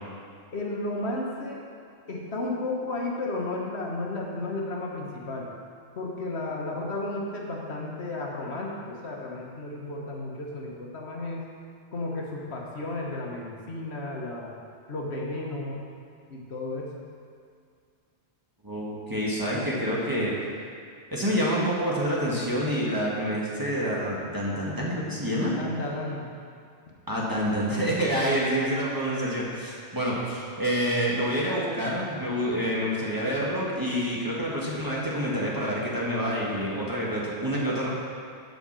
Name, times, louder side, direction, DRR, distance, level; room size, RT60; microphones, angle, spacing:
voice 1, 0.5-1.6 2.1-5.5 6.0-11.5 11.9-14.5 14.9-15.8 16.3-16.9 25.6-26.3, left 2 dB, 65° left, -2 dB, 1.4 m, -33 dB
voice 2, 18.6-20.7 21.1-25.6 27.1-37.9, equal, 20° right, -6 dB, 1.5 m, -27 dB
7.7 x 5.1 x 7.4 m, 2.2 s
omnidirectional pair, 1.2 m